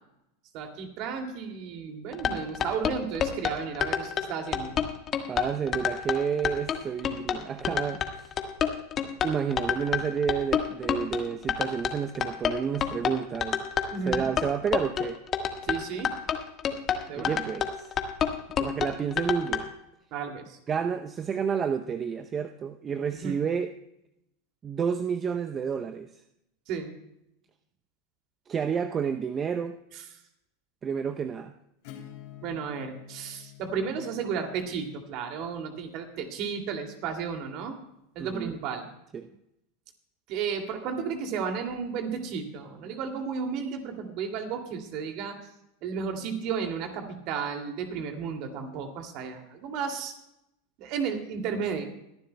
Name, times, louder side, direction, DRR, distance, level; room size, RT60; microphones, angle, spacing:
voice 1, 0.5-4.8 13.9-14.2 15.6-16.1 17.1-17.4 20.1-20.6 23.2-23.4 26.7-26.9 29.9-30.0 32.4-37.8 38.1-38.9 40.3-45.4 45.8-50.1 50.8-51.8, right 6 dB, 50° right, 4 dB, 2.4 m, -33 dB
sound 1, 2.1-19.6, left 8 dB, 35° left, 1.4 m, -28 dB
voice 2, 5.3-8.3 9.2-13.6 14.1-15.2 17.2-17.9 18.6-19.7 20.7-23.7 24.6-26.1 28.5-29.8 30.8-31.5 38.2-38.6 39.1-39.3, right 7 dB, 30° right, 9 dB, 0.6 m, -30 dB
Acoustic guitar / Strum, 31.8-37.3, left 12 dB, 60° left, 3.0 m, -50 dB
23.0 x 11.5 x 2.2 m, 0.82 s
hypercardioid pair, 90°, 0 cm